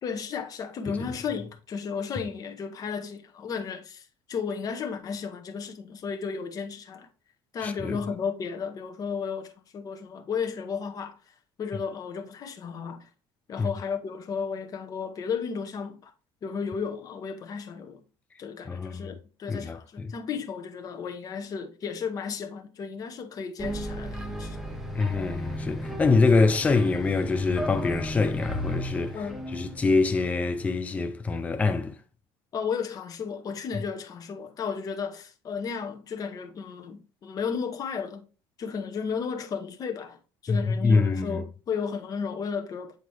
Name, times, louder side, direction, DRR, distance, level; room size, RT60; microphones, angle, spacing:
voice 1, 0.0-7.1 7.5-11.2 11.6-13.1 13.5-16.1 16.4-18.0 18.4-24.6 29.1-29.5 32.5-38.2 38.6-42.9, left 6 dB, 35° left, 1.0 m, -34 dB
voice 2, 7.6-8.0 13.6-13.7 18.7-19.1 19.5-20.1 25.0-29.2 29.5-32.0 40.5-41.4, left 3 dB, 15° left, 0.5 m, -25 dB
sound 1, 23.6-30.9, equal, 5° right, 0.9 m, -35 dB
7.9 x 4.1 x 3.3 m
cardioid pair, 145°, 11 cm